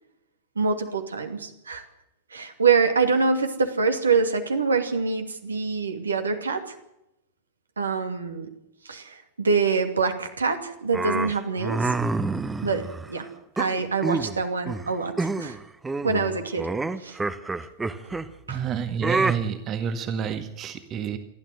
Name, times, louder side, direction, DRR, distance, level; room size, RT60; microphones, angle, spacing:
voice 1, 0.6-1.8 2.3-6.8 7.8-8.5 8.8-11.9 12.6-13.3 13.6-15.6 16.0-16.7 17.0-17.2 18.0-18.1 18.5-18.6, right 4 dB, 75° right, 6 dB, 2.5 m, -25 dB
sound 1, 10.9-13.1 13.6-14.4 14.7-14.9 15.2-15.6 15.8-18.3 19.0-19.4, right 3 dB, 10° right, 1.2 m, -27 dB
voice 2, 18.5-21.2, right 7 dB, 30° right, 9 dB, 1.8 m, -29 dB
28.0 x 12.5 x 8.0 m, 0.85 s
figure-of-eight pair, 90°, 0 cm